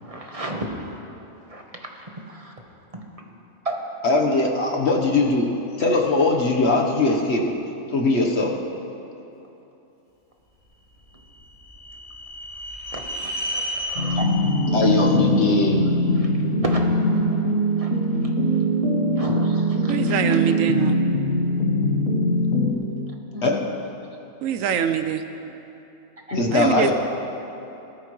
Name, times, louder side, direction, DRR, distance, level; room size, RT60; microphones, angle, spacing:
voice 1, 0.0-0.7 1.5-1.6 2.3-2.5 2.9-3.3 3.6-3.8 12.9-14.2 16.2-16.3 16.6-17.4 17.8-17.9 19.2-20.3 23.3-23.7 26.3-26.4, right 1 dB, 25° right, 0 dB, 1.1 m, -33 dB
voice 2, 4.0-5.5 5.8-7.5 7.9-8.5 14.7-15.8 23.4-23.6 26.3-26.9, left 2 dB, 55° left, 0 dB, 1.4 m, -20 dB
sound 1, 10.9-16.1, equal, 90° left, 4.3 m, -33 dB
sound 2, 14.0-22.7, equal, 75° left, 1.8 m, -22 dB
voice 3, 19.9-21.0 24.4-25.2 26.5-26.9, right 8 dB, 75° right, 9 dB, 1.0 m, -24 dB
18.5 x 13.0 x 3.2 m, 2.9 s
omnidirectional pair, 1.4 m